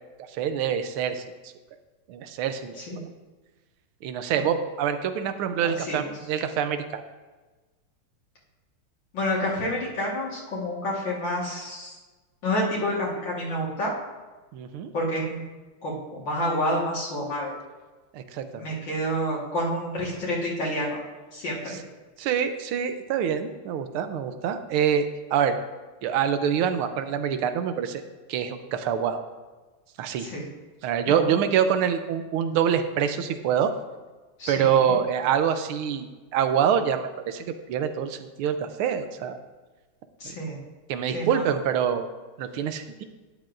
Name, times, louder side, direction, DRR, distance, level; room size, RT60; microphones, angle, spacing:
voice 1, 0.3-1.2 2.1-2.8 4.0-7.0 14.5-14.9 18.1-18.6 21.7-21.8 22.2-25.0 25.3-25.5 26.0-28.0 28.3-29.2 30.0-30.3 30.8-33.7 34.5-36.1 36.3-39.4 40.9-42.1 42.4-43.0, right 8 dB, 85° right, 9 dB, 1.6 m, -25 dB
voice 2, 5.6-6.0 9.1-12.0 12.4-13.9 14.9-15.5 15.8-17.5 18.5-21.0 21.3-21.8 30.2-30.4 31.1-31.4 34.4-35.0 40.2-40.6 41.1-41.4, equal, 60° left, -5 dB, 2.3 m, -29 dB
12.0 x 9.7 x 2.6 m, 1.3 s
omnidirectional pair, 2.4 m